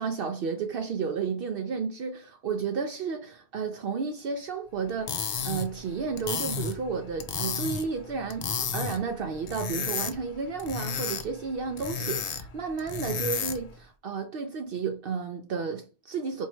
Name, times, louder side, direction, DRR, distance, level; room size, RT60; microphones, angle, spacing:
voice 1, 0.0-8.5 8.7-16.5, right 5 dB, 65° right, 0.7 m, -32 dB
sound 1, 4.9-13.8, left 6 dB, 50° left, 0.5 m, -33 dB
4.4 x 2.7 x 3.0 m
omnidirectional pair, 1.1 m